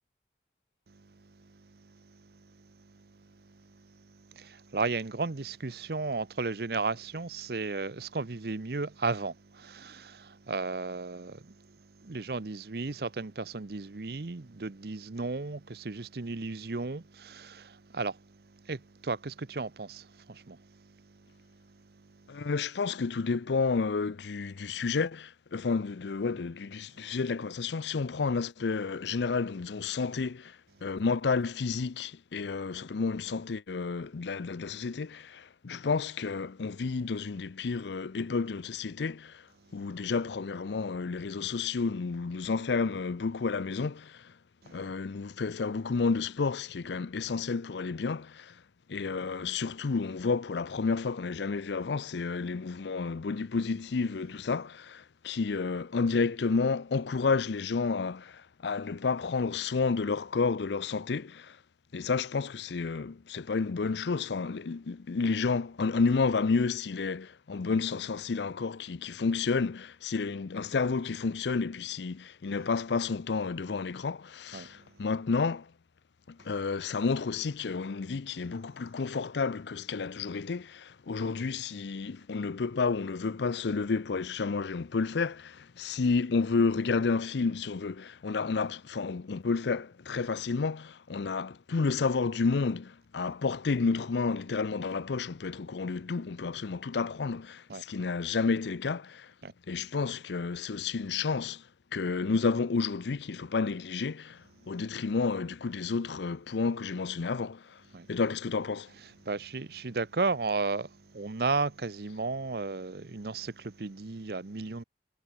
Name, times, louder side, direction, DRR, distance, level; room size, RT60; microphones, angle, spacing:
voice 1, 4.3-11.5 12.0-18.2 18.7-20.6 44.6-44.7 74.5-74.7 97.7-97.8 99.4-99.5 107.9-108.1 109.3-114.8, right 3 dB, 60° right, 0.8 m, -34 dB
voice 2, 22.3-30.6 30.8-39.4 39.7-44.3 44.7-48.6 48.9-61.6 61.9-75.7 76.3-99.3 99.7-101.6 101.9-107.8 108.1-108.9, left 4 dB, 75° left, 0.5 m, -31 dB
head